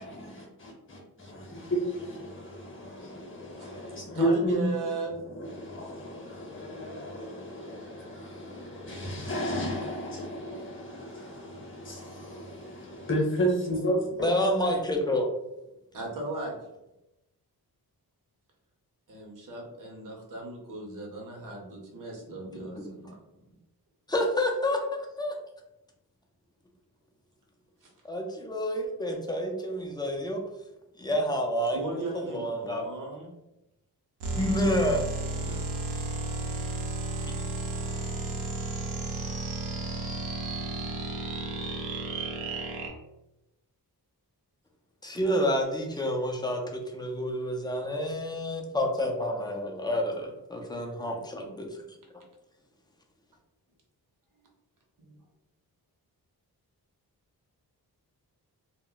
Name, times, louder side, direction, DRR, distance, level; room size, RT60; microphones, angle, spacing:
voice 1, 0.0-4.7 5.0-14.3, equal, 30° left, -1 dB, 0.8 m, -33 dB
voice 2, 3.6-5.1 15.9-16.5 19.1-23.2 27.8-27.9 31.7-33.3 35.3-35.6 55.0-55.2, right 2 dB, 55° right, -1 dB, 0.8 m, -37 dB
voice 3, 14.2-15.3 22.8-22.9 24.1-25.3 28.0-30.4 31.0-32.8 34.3-35.1 45.0-51.8, equal, 10° left, 1 dB, 0.3 m, -29 dB
sound 1, 34.2-42.9, right 2 dB, 90° right, 0.7 m, -33 dB
2.1 x 2.0 x 3.6 m, 0.92 s
wide cardioid pair, 150°, 39 cm